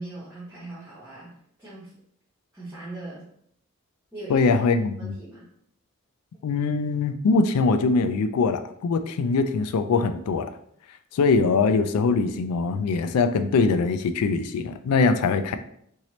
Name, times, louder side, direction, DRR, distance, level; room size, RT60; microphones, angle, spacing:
voice 1, 0.0-1.9 2.5-3.3 4.1-4.6 5.0-5.4, right 1 dB, 10° right, -10 dB, 0.8 m, -40 dB
voice 2, 4.3-5.2 6.4-10.5 11.1-15.6, left 4 dB, 85° left, 10 dB, 0.3 m, -22 dB
3.0 x 2.7 x 2.9 m, 0.68 s
head